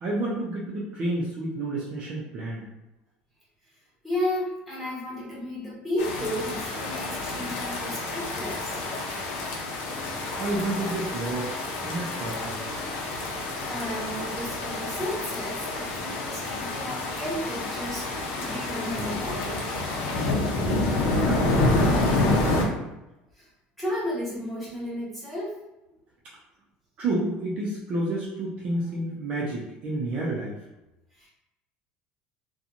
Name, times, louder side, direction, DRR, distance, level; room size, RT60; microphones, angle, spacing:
voice 1, 0.0-2.7 10.4-11.6 11.8-12.6 20.7-22.9 27.0-30.6, right 2 dB, 35° right, -4 dB, 0.5 m, -30 dB
voice 2, 4.0-8.7 13.7-18.1 18.3-19.5 20.1-20.2 23.3-23.5 23.8-25.6 31.2-31.3, left 1 dB, ahead, -8 dB, 1.1 m, -33 dB
sound 1, 6.0-22.7, left 2 dB, 90° left, 0.6 m, -28 dB
2.8 x 2.3 x 2.5 m, 0.96 s
cardioid pair, 160°, 3 cm